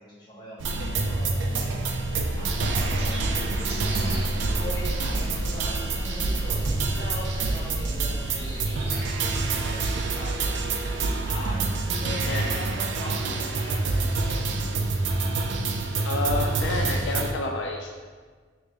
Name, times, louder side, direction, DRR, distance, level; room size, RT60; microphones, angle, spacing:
voice 1, 0.0-2.0 2.4-4.0 4.5-6.6 6.9-10.8 11.3-14.6, equal, 25° left, -6 dB, 1.1 m, -40 dB
sound 1, 0.6-17.3, right 3 dB, 75° right, 0.4 m, -27 dB
sound 2, 2.1-9.4, equal, 35° right, 1.2 m, -40 dB
sound 3, 5.3-17.0, equal, 10° right, 0.4 m, -47 dB
voice 2, 12.3-12.7 16.0-17.9, left 2 dB, 75° left, 1 dB, 0.3 m, -29 dB
5.0 x 2.1 x 3.2 m, 1.5 s
head